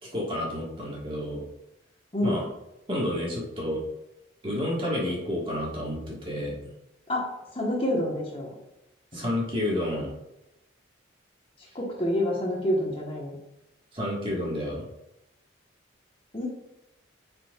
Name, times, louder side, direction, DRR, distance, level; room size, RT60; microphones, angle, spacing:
voice 1, 0.0-1.4 2.2-2.5 2.9-3.8 4.4-6.5 9.1-10.1 13.9-14.8, left 1 dB, 25° right, -4 dB, 1.6 m, -30 dB
voice 2, 7.1-8.5 9.1-9.2 11.7-13.3 16.3-16.5, left 1 dB, 30° left, -2 dB, 1.2 m, -28 dB
10.0 x 4.5 x 2.4 m, 0.92 s
head